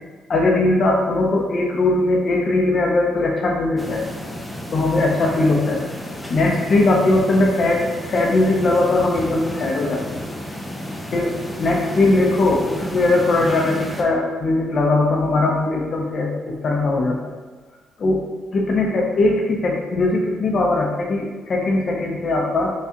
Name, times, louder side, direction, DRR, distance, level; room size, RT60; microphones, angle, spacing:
voice 1, 0.3-4.0 4.7-5.8 6.3-10.2 11.1-17.3 18.0-18.2 18.5-22.7, left 2 dB, 50° left, 0 dB, 0.7 m, -20 dB
sound 1, 3.8-14.0, equal, 10° left, 0.6 m, -32 dB
5.6 x 2.4 x 2.9 m, 1.3 s
cardioid pair, 90°, 0 cm